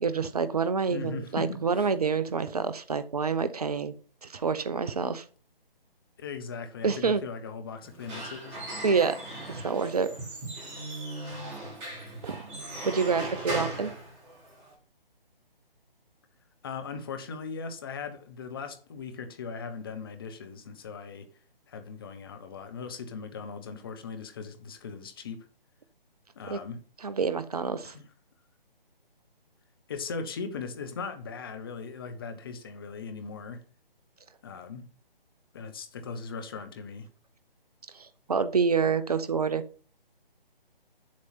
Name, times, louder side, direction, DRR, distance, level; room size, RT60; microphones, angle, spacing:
voice 1, 0.0-3.9 4.2-5.2 6.8-7.2 8.8-9.2 9.5-10.1 12.2-12.4 12.8-13.9 26.5-26.6 27.0-27.9 37.9-39.6, right 5 dB, 40° right, 0.7 m, -27 dB
voice 2, 0.9-1.9 6.2-8.6 16.6-21.3 21.7-25.5 26.4-26.8 27.8-28.1 29.9-33.6 34.4-34.9 35.5-37.1, left 5 dB, 25° left, 0.9 m, -39 dB
Squeak / Wood, 7.8-14.7, right 1 dB, 15° right, 4.7 m, -38 dB
8.7 x 7.4 x 4.3 m
figure-of-eight pair, 145°, 29 cm